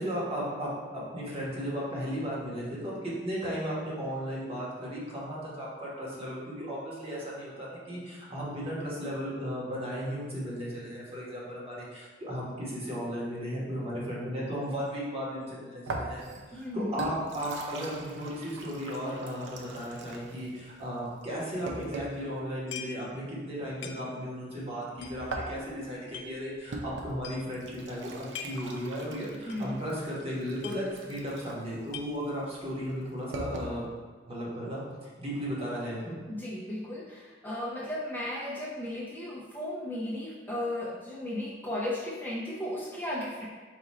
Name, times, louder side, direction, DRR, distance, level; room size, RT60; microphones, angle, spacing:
voice 1, 0.0-16.2 16.5-33.9 34.3-36.2, equal, 35° right, -6 dB, 1.2 m, -35 dB
sound 1, 15.9-22.3 25.0-33.7, right 2 dB, 70° right, 0.5 m, -41 dB
voice 2, 16.5-16.9 29.5-29.8 36.3-43.5, left 1 dB, 10° left, -7 dB, 0.6 m, -35 dB
sound 2, 22.7-23.1 23.4-23.5 23.8-24.4 25.0-26.3 26.8-26.9 27.2-27.6 28.1-28.7 29.1-29.2 29.5-29.7 30.0-30.1 30.4-31.2 31.5-32.5, left 7 dB, 75° left, 0.4 m, -43 dB
4.9 x 2.5 x 4.1 m, 1.4 s
head